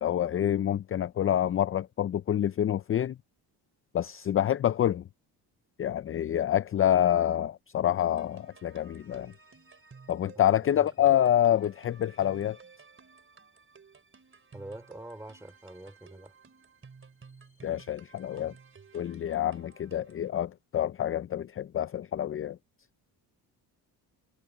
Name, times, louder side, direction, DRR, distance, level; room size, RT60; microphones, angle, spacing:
voice 1, 0.0-3.2 3.9-5.0 5.8-9.3 10.1-12.6 17.6-18.5 18.9-22.6, left 11 dB, 35° left, 0.5 m, -27 dB
sound 1, 8.0-20.3, right 5 dB, 30° right, 4.2 m, -55 dB
voice 2, 10.7-11.2 14.5-16.3, right 1 dB, 5° right, 3.5 m, -45 dB
cardioid pair, 100°, 40 cm